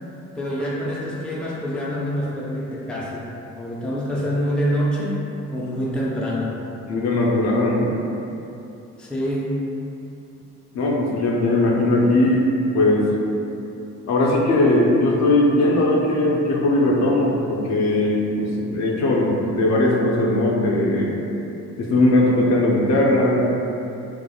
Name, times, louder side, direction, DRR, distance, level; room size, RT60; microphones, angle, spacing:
voice 1, 0.3-5.2 5.5-6.6 9.0-9.6, equal, 5° left, -6 dB, 0.4 m, -26 dB
voice 2, 6.8-7.9 10.7-13.1 14.0-21.1 21.8-23.5, left 1 dB, 65° left, -3 dB, 0.5 m, -19 dB
2.9 x 2.0 x 2.3 m, 2.8 s
cardioid pair, 90°, 30 cm